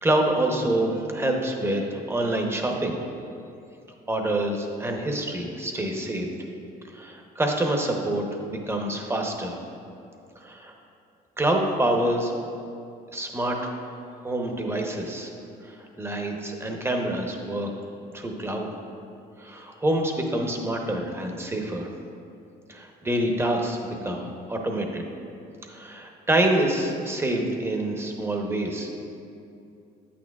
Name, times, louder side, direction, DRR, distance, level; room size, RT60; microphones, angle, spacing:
voice 1, 0.0-3.0 4.1-6.3 6.8-9.6 10.4-10.7 11.4-12.3 13.1-13.8 14.2-15.3 15.6-17.7 18.1-18.7 19.4-21.9 22.7-25.0 25.6-28.9, right 1 dB, 15° right, 2 dB, 0.9 m, -26 dB
8.7 x 8.6 x 2.4 m, 2.6 s
cardioid pair, 110°, 17 cm